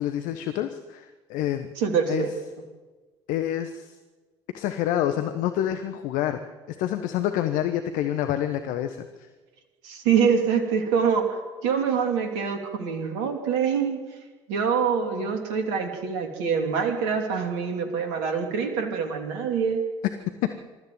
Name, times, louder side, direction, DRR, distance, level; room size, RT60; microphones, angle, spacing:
voice 1, 0.0-1.7 2.1-2.3 3.3-3.9 4.5-6.4 6.7-9.1 20.4-20.5, left 11 dB, 60° left, 8 dB, 1.2 m, -27 dB
voice 2, 1.8-2.3 9.8-14.0 14.5-19.8, right 6 dB, 70° right, 4 dB, 3.0 m, -25 dB
26.5 x 14.0 x 7.9 m, 1.3 s
figure-of-eight pair, 55°, 15 cm